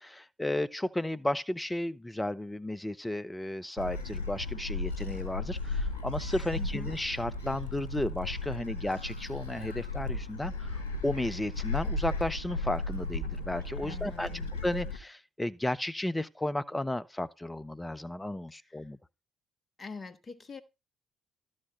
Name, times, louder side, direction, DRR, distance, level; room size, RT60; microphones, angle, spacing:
voice 1, 0.0-19.0, left 1 dB, 10° left, 0.7 m, -34 dB
Gull seagull, 3.8-15.0, left 2 dB, 80° left, 1.2 m, -35 dB
voice 2, 6.5-6.9 13.8-14.5 19.8-20.6, left 4 dB, 30° left, 1.3 m, -43 dB
12.5 x 6.3 x 4.3 m
figure-of-eight pair, 45°, 0 cm